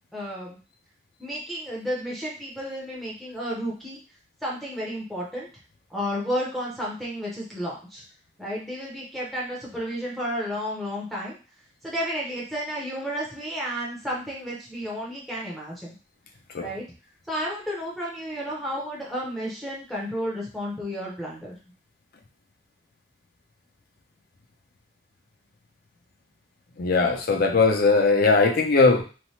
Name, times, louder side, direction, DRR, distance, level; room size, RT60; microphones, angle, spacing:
voice 1, 0.1-0.6 1.2-4.0 4.4-5.5 5.9-8.0 8.4-11.4 11.8-15.9 16.6-16.8 17.3-21.6, equal, ahead, -5 dB, 0.6 m, -32 dB
voice 2, 26.8-29.0, left 3 dB, 55° left, 5 dB, 0.5 m, -19 dB
3.1 x 2.1 x 2.7 m, 0.34 s
head